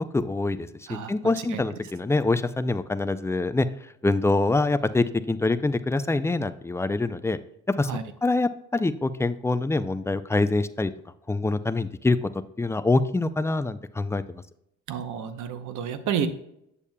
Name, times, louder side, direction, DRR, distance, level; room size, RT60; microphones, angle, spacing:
voice 1, 0.1-3.7 4.0-7.4 7.7-7.9 8.2-10.9 11.3-12.2 12.6-14.2, left 2 dB, 10° left, 12 dB, 0.4 m, -25 dB
voice 2, 14.9-16.3, right 8 dB, 75° right, 9 dB, 0.8 m, -30 dB
8.4 x 7.0 x 2.2 m, 0.77 s
cardioid pair, 90°, 30 cm